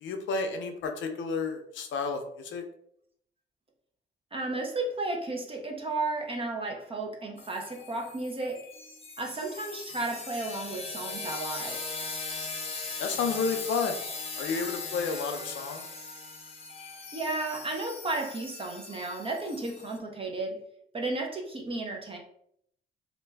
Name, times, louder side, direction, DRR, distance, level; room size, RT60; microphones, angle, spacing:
voice 1, 0.0-2.6 13.0-14.0 14.4-15.8, left 4 dB, 70° left, 5 dB, 0.5 m, -31 dB
voice 2, 4.3-8.6 9.2-11.8 17.1-20.6 20.9-22.2, right 2 dB, 25° right, 1 dB, 0.7 m, -33 dB
sound 1, 7.4-20.0, left 3 dB, 30° left, 0.7 m, -39 dB
2.5 x 2.2 x 3.3 m, 0.68 s
cardioid pair, 90°, 20 cm